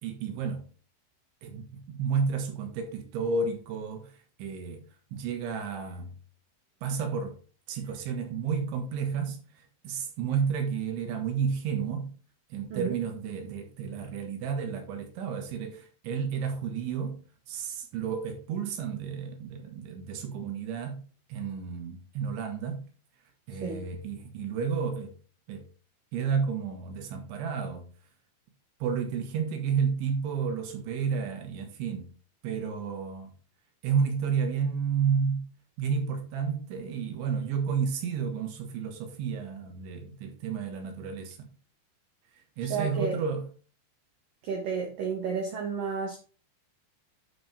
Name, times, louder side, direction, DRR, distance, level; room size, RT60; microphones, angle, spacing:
voice 1, 0.0-0.6 1.4-4.1 4.4-4.8 5.1-6.1 6.8-7.4 7.7-9.4 9.8-12.1 12.5-17.2 17.5-21.0 21.3-22.8 23.5-25.1 25.5-25.7 26.1-27.8 28.8-32.1 32.4-33.3 33.8-35.4 35.8-41.5 42.6-43.4, right 6 dB, 85° right, 3.8 m, -31 dB
voice 2, 23.5-23.9 42.6-43.2 44.4-46.2, right 5 dB, 70° right, 2.2 m, -32 dB
11.0 x 4.7 x 3.3 m
omnidirectional pair, 5.3 m